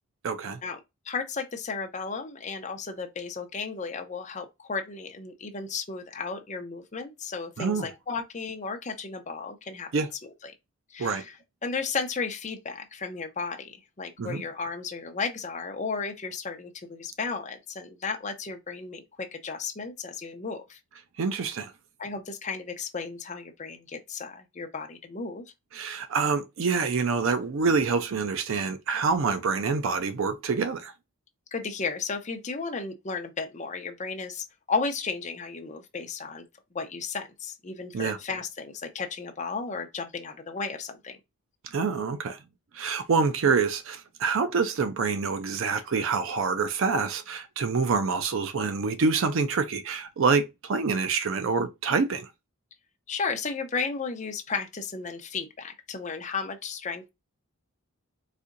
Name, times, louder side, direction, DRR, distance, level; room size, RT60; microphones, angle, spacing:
voice 1, 0.2-0.6 7.6-7.9 9.9-10.1 11.0-11.2 14.2-14.4 21.2-21.7 25.7-30.9 37.9-38.2 41.7-42.4 42.7-52.3, right 5 dB, 60° right, 0.4 m, -26 dB
voice 2, 1.1-10.5 10.9-11.3 11.6-20.8 22.0-25.4 31.5-36.4 36.7-41.2 53.1-57.1, left 4 dB, 35° left, 0.5 m, -34 dB
4.1 x 2.7 x 2.5 m
head